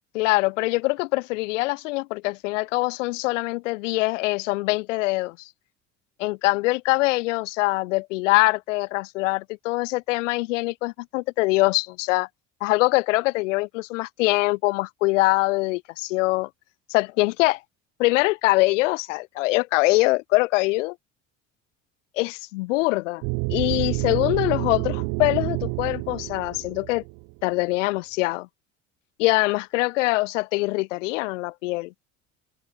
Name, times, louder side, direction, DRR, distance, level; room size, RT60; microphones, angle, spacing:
voice 1, 0.1-5.5 6.2-12.3 12.6-16.5 16.9-17.6 18.0-20.9 22.2-23.2 23.5-27.0 27.4-28.5 29.2-31.9, left 22 dB, 75° left, 1.0 m, -23 dB
sound 1, 23.2-27.3, right 35 dB, 65° right, 1.9 m, -28 dB
hypercardioid pair, 60°, 38 cm